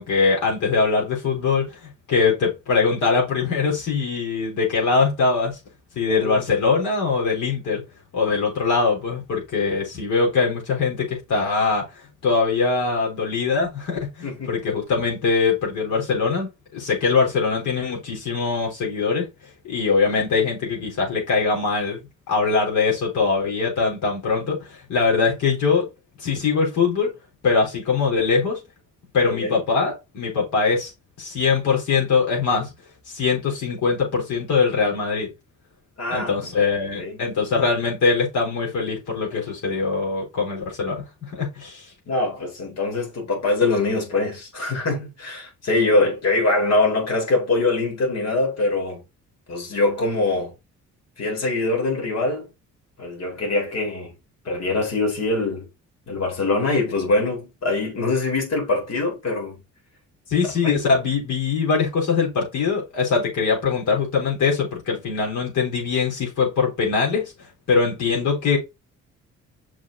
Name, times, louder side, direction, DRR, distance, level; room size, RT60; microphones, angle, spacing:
voice 1, 0.0-1.8 2.1-5.6 6.0-7.8 8.1-11.9 12.2-19.3 19.6-22.0 22.3-25.9 26.2-27.1 27.4-28.6 29.1-30.9 31.2-32.7 33.1-35.3 36.1-41.9 60.3-68.6, left 4 dB, 75° left, 4.0 m, -22 dB
voice 2, 6.0-6.4 14.2-14.5 29.2-29.5 36.0-36.5 37.0-37.2 42.1-49.0 49.5-50.5 51.2-52.5 53.0-54.1 54.4-55.7 56.1-59.6 60.6-60.7, left 2 dB, 60° left, 4.2 m, -23 dB
6.0 x 4.9 x 3.9 m
cardioid pair, 90°, 30 cm